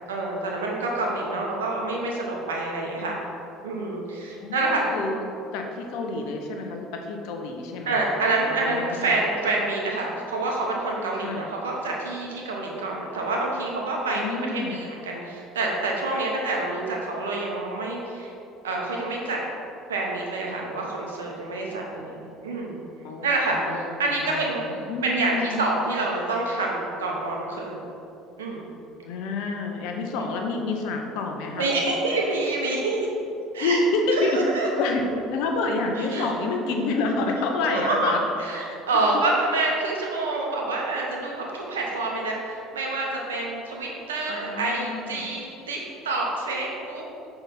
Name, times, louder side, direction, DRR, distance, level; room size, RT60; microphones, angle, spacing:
voice 1, 0.1-3.2 3.6-4.8 7.8-14.2 14.5-18.3 18.6-19.4 19.9-22.8 23.2-24.6 25.0-27.8 28.4-28.7 31.5-33.1 33.5-33.8 34.2-34.7 36.0-36.3 37.7-38.1 38.4-45.8 46.0-47.0, right 2 dB, 90° right, -2 dB, 1.0 m, -27 dB
voice 2, 4.4-5.2 5.5-8.0 8.5-9.2 11.1-11.5 14.1-14.9 23.0-25.6 29.0-31.7 33.6-34.4 34.8-38.2 38.7-38.8 44.2-45.3, left 3 dB, 70° left, 3 dB, 0.8 m, -28 dB
5.8 x 3.4 x 5.3 m, 2.7 s
hypercardioid pair, 70°, 0 cm